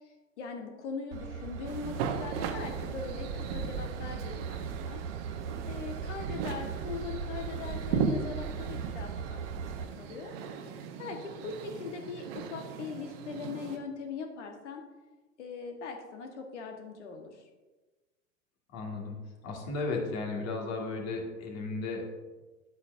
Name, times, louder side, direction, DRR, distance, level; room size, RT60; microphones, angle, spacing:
voice 1, 0.4-5.0 5.7-10.3 11.0-14.8 15.4-17.4, left 5 dB, 65° left, 3 dB, 1.5 m, -40 dB
Train / Engine, 1.1-9.8, right 6 dB, 65° right, 0.7 m, -38 dB
sound 1, 1.6-13.8, right 7 dB, 50° right, 1.0 m, -38 dB
voice 2, 18.7-19.2 19.4-22.1, left 3 dB, 40° left, 1 dB, 2.0 m, -34 dB
10.5 x 8.1 x 2.6 m, 1.2 s
figure-of-eight pair, 85°, 38 cm